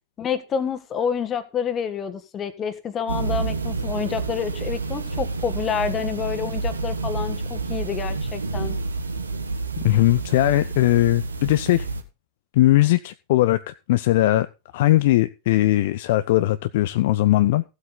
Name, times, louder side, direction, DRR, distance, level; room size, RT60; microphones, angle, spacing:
voice 1, 0.2-8.8, left 7 dB, 25° left, 1.6 m, -28 dB
sound 1, 3.1-12.0, right 3 dB, 75° right, 1.5 m, -29 dB
voice 2, 9.8-11.9 12.5-14.5 14.7-17.6, left 16 dB, 55° left, 0.5 m, -19 dB
15.5 x 8.1 x 3.9 m
figure-of-eight pair, 90°, 0 cm